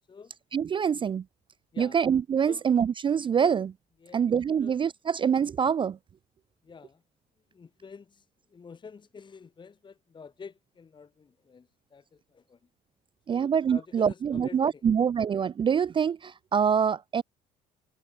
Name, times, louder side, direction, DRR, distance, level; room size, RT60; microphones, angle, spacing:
voice 1, 0.5-1.2 1.8-3.7 4.1-6.0 13.3-17.2, right 7 dB, 30° right, 0.4 m, -25 dB
voice 2, 4.0-4.3 4.6-4.8 6.6-7.0 7.5-8.2 8.5-12.6 13.3-14.8, left 5 dB, 30° left, 1.3 m, -48 dB
cardioid pair, 110°, 17 cm